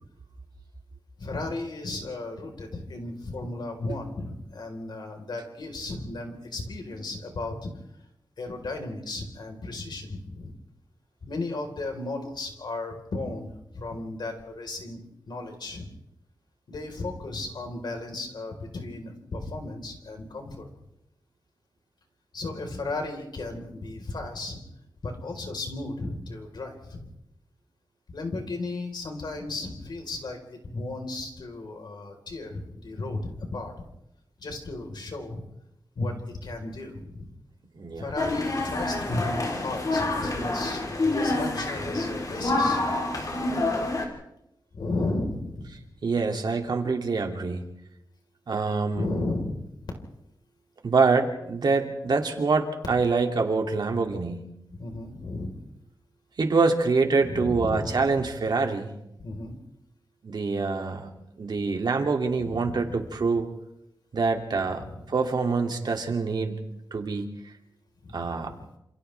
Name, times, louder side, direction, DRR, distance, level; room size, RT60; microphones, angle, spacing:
voice 1, 1.2-7.7 8.4-10.6 11.2-15.9 16.7-20.7 22.3-24.6 25.0-27.1 28.1-33.7 34.4-35.4 35.9-37.3 38.0-42.9 43.2-43.3 44.7-45.8 49.0-49.9 54.8-55.6 57.2-58.3 59.2-59.6 62.4-63.0 64.6-65.1 68.0-68.6, left 2 dB, 70° left, 3 dB, 4.3 m, -35 dB
voice 2, 37.7-38.1 46.0-47.6 48.5-49.1 50.8-54.5 56.4-58.9 60.2-61.1 61.4-63.5 64.1-66.6 66.9-67.3 68.1-68.5, right 4 dB, 65° right, 3 dB, 2.6 m, -25 dB
sound 1, 38.2-44.0, left 2 dB, 50° left, 3.6 m, -27 dB
28.0 x 28.0 x 3.5 m, 0.82 s
wide cardioid pair, 130°, 8 cm